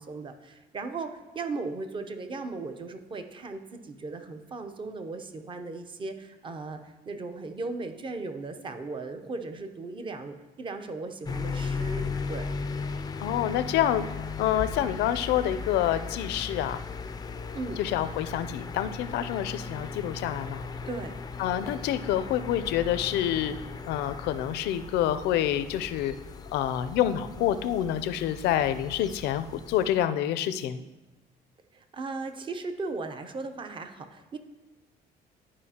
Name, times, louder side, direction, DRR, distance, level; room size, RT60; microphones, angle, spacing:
voice 1, 0.0-12.5 17.5-17.8 20.9-21.1 31.7-34.4, right 3 dB, 30° right, 7 dB, 0.7 m, -37 dB
sound 1, 11.3-30.0, left 4 dB, 25° left, 0.4 m, -37 dB
voice 2, 13.2-14.1 14.4-16.8 17.8-20.6 21.4-23.6 23.8-26.1 26.5-30.8, left 11 dB, 80° left, 12 dB, 0.5 m, -27 dB
11.0 x 4.9 x 2.8 m, 1.1 s
cardioid pair, 110°, 17 cm